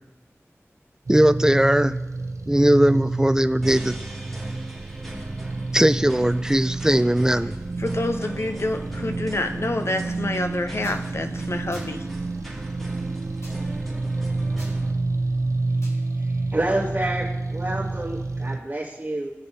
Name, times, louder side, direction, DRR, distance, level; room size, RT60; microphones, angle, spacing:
voice 1, 1.1-2.0 2.5-4.0 5.7-7.5, right 1 dB, 10° right, 12 dB, 0.4 m, -19 dB
sound 1, 1.1-18.6, right 3 dB, 85° right, 0.5 m, -29 dB
sound 2, 3.6-14.9, right 1 dB, 5° left, 2.2 m, -39 dB
voice 2, 7.8-12.1, left 2 dB, 60° left, 7 dB, 0.7 m, -28 dB
sound 3, 10.8-11.0 11.7-11.9 13.4-13.6 14.6-14.7 15.8-16.0, left 1 dB, 75° left, 3.2 m, -45 dB
voice 3, 15.9-19.3, right 1 dB, 35° right, -6 dB, 2.2 m, -29 dB
18.0 x 6.8 x 2.7 m, 1.1 s
wide cardioid pair, 60°, 5 cm